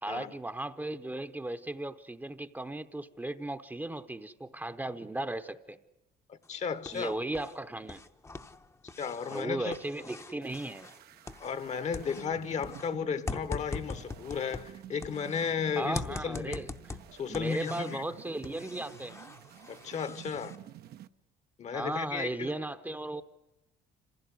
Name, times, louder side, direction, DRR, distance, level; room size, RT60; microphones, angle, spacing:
voice 1, 0.0-5.8 6.9-8.0 9.3-10.9 15.8-16.7 17.3-19.3 21.7-23.2, right 1 dB, 10° right, 0.8 m, -36 dB
voice 2, 6.3-7.2 9.0-9.7 11.4-16.6 17.2-18.0 19.7-20.6 21.6-22.5, left 6 dB, 45° left, 1.1 m, -34 dB
sound 1, 6.4-7.6 7.8-11.7 11.9-15.5 15.9-18.1 18.4-20.6, left 3 dB, 15° left, 0.8 m, -42 dB
sound 2, 10.4-21.1, right 12 dB, 70° right, 0.8 m, -50 dB
26.0 x 16.0 x 9.7 m
cardioid pair, 110°, 17 cm